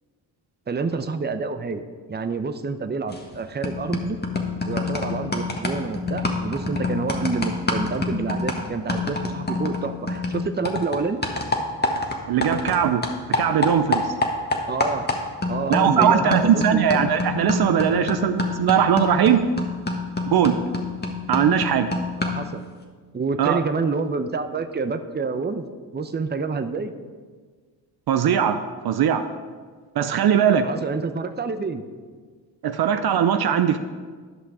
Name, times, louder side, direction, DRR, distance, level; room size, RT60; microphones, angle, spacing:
voice 1, 0.7-1.8 2.1-4.2 4.6-11.2 14.7-15.1 15.5-17.0 22.3-22.6 23.1-25.6 25.9-26.9 30.6-31.8, right 4 dB, 25° right, 9 dB, 0.7 m, -28 dB
sound 1, 3.1-3.4 3.6-12.8 13.0-22.5, left 3 dB, 20° left, 1.5 m, -27 dB
voice 2, 12.3-13.0 13.3-14.1 15.7-19.5 20.3-20.6 21.3-21.9 23.4-23.6 28.1-28.6 28.8-29.2 30.0-30.7 32.6-33.8, right 8 dB, 60° right, 9 dB, 0.6 m, -20 dB
11.0 x 5.8 x 4.8 m, 1.5 s
supercardioid pair, 55°, 43 cm